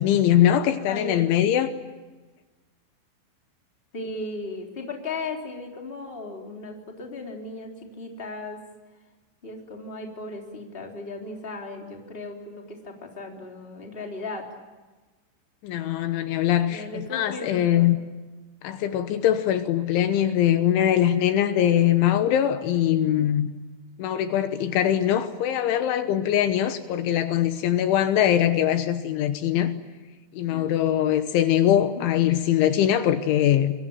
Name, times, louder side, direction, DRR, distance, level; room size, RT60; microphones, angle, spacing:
voice 1, 0.0-1.7 15.6-18.0 18.6-23.5 24.0-29.8 30.3-33.7, left 11 dB, 75° left, 9 dB, 3.4 m, -22 dB
voice 2, 0.9-1.2 3.9-8.6 9.4-14.5 16.7-18.0 23.0-23.3 30.5-30.7 32.0-32.1, left 2 dB, 15° left, 1 dB, 3.0 m, -36 dB
26.0 x 23.5 x 8.8 m, 1.2 s
omnidirectional pair, 5.7 m